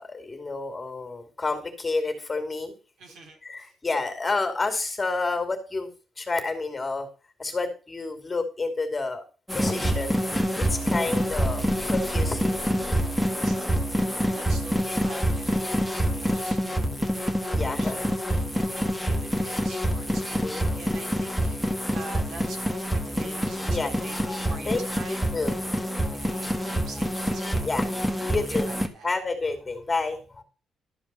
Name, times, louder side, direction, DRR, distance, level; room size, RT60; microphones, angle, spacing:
voice 1, 0.0-2.7 3.4-7.1 7.4-9.2 9.5-10.1 10.6-12.6 17.5-18.4 20.4-20.8 23.6-25.6 26.0-26.3 26.6-27.0 27.6-28.7 29.0-30.4, left 3 dB, 20° left, 5 dB, 2.8 m, -30 dB
voice 2, 3.0-3.7 13.0-15.7 16.1-25.3 26.1-27.7 28.5-29.1, right 3 dB, 65° right, 1 dB, 3.9 m, -45 dB
sound 1, 9.5-28.9, equal, ahead, 1.6 m, -26 dB
13.0 x 4.9 x 6.9 m, 0.35 s
cardioid pair, 150°, 0 cm